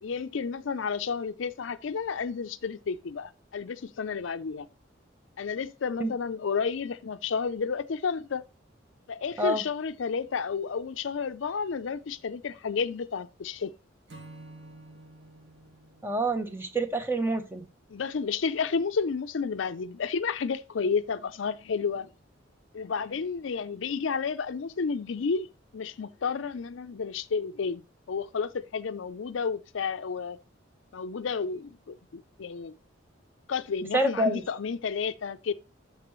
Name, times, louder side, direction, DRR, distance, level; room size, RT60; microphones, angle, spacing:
voice 1, 0.0-4.7 5.4-8.4 9.1-13.7 17.9-22.1 22.7-25.5 25.7-30.4 30.9-32.7 33.5-35.5, left 5 dB, 75° left, 0.5 m, -31 dB
Acoustic guitar / Strum, 14.1-17.4, right 2 dB, 65° right, 2.2 m, -50 dB
voice 2, 16.0-17.7 33.9-34.4, right 1 dB, 10° right, 0.8 m, -27 dB
12.5 x 4.7 x 3.1 m
head